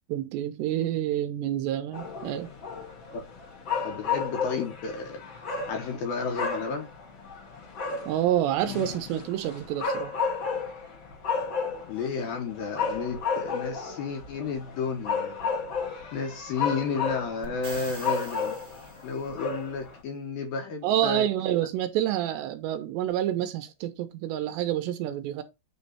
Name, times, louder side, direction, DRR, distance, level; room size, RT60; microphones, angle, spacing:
voice 1, 0.1-2.5 8.1-10.1 20.8-25.4, right 12 dB, 80° right, 2.8 m, -28 dB
sound 1, 1.9-20.0, left 5 dB, 90° left, 1.0 m, -33 dB
voice 2, 3.8-5.2 5.7-6.9 11.9-15.5 16.1-18.6 19.0-21.3, left 5 dB, 65° left, 2.6 m, -32 dB
sound 2, 17.4-19.5, right 4 dB, 40° right, 2.5 m, -44 dB
9.4 x 3.2 x 4.1 m
omnidirectional pair, 5.3 m